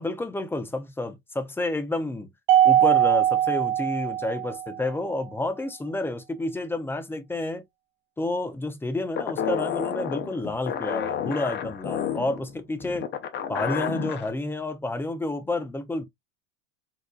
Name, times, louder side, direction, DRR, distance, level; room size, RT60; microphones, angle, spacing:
voice 1, 0.0-2.3 2.6-7.6 8.2-13.1 13.5-16.0, left 2 dB, 5° left, 0.3 m, -30 dB
Mallet percussion, 2.5-4.9, right 11 dB, 50° right, 0.5 m, -21 dB
sound 1, 9.2-14.3, left 8 dB, 30° left, 0.7 m, -30 dB
4.2 x 2.6 x 2.3 m
supercardioid pair, 110°, 39 cm